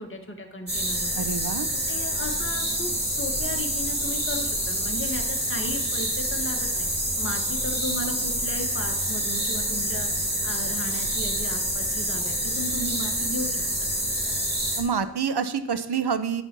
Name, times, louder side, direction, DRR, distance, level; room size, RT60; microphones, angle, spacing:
voice 1, 0.0-1.3 1.9-6.9 7.2-13.9, left 1 dB, 25° left, 2 dB, 1.5 m, -35 dB
sound 1, 0.7-14.8, equal, 20° right, 2.9 m, -27 dB
voice 2, 1.2-1.7 14.8-16.4, right 6 dB, 60° right, 11 dB, 0.7 m, -27 dB
10.5 x 4.4 x 5.9 m, 0.91 s
wide cardioid pair, 55°, 46 cm